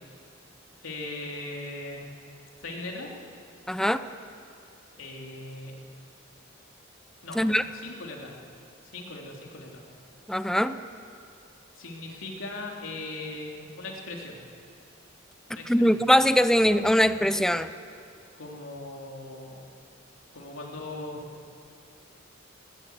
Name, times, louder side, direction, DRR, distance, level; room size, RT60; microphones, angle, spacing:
voice 1, 0.8-2.0 2.6-3.1 5.0-5.7 7.2-8.3 8.8-9.8 11.8-14.4 15.5-16.0 18.4-19.6 20.3-21.5, left 2 dB, 80° left, -1 dB, 3.3 m, -39 dB
voice 2, 3.7-4.0 7.4-7.6 10.3-10.7 15.7-17.7, equal, 5° left, 12 dB, 0.5 m, -21 dB
18.5 x 18.0 x 8.1 m, 2.4 s
head